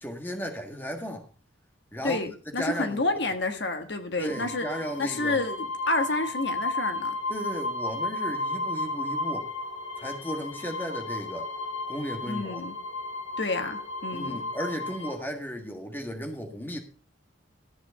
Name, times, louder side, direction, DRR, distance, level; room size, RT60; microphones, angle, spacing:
voice 1, 0.0-1.3 1.9-2.2 2.6-3.0 4.2-5.4 7.3-9.5 10.0-11.5 11.9-12.6 14.1-16.8, equal, 10° left, 1.6 m, -35 dB
voice 2, 2.0-4.7 5.0-7.1 12.3-12.8 13.4-14.4, left 2 dB, 60° left, 1.4 m, -29 dB
sound 1, 4.3-15.1, left 2 dB, 30° left, 1.8 m, -33 dB
13.5 x 7.8 x 5.3 m
head